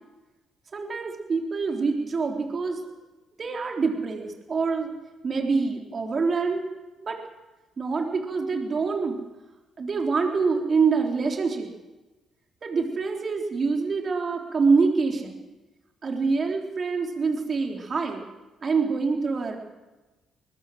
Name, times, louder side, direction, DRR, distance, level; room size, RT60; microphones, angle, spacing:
voice 1, 0.7-2.8 3.4-4.9 5.2-6.6 7.0-7.2 7.8-9.2 9.8-11.7 12.6-15.4 16.0-18.2 18.6-19.6, right 4 dB, 40° right, 2 dB, 3.6 m, -25 dB
22.0 x 19.5 x 7.8 m, 1.1 s
cardioid pair, 90°, 0 cm